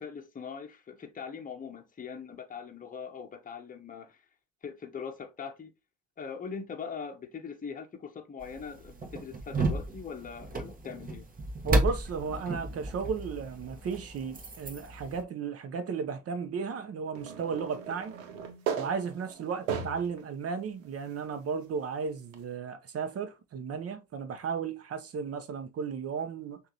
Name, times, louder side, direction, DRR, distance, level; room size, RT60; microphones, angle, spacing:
voice 1, 0.0-4.2 4.6-5.7 6.2-11.3, left 6 dB, 20° left, 1.1 m, -41 dB
sound 1, 8.4-15.2, right 2 dB, 20° right, 1.4 m, -33 dB
voice 2, 11.6-18.1 18.8-26.6, right 6 dB, 35° right, 1.0 m, -34 dB
sound 2, 17.1-20.2 20.8-20.9 22.3-22.4, right 7 dB, 75° right, 1.1 m, -36 dB
6.3 x 2.7 x 3.0 m
hypercardioid pair, 70°, 39 cm